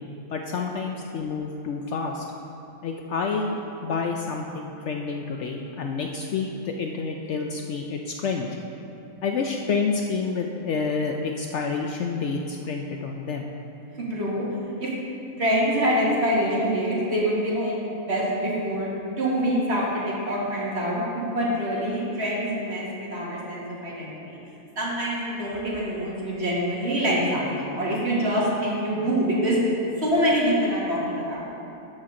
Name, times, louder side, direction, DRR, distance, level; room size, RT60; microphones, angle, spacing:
voice 1, 0.3-2.2 2.8-8.5 9.2-13.5, left 4 dB, 65° left, 2 dB, 0.8 m, -28 dB
voice 2, 14.0-14.5 14.8-14.9 15.4-17.8 18.1-18.9 19.2-24.4 24.8-29.6 30.0-31.4, equal, 50° right, -6 dB, 1.9 m, -25 dB
12.5 x 5.8 x 3.8 m, 2.8 s
omnidirectional pair, 1.5 m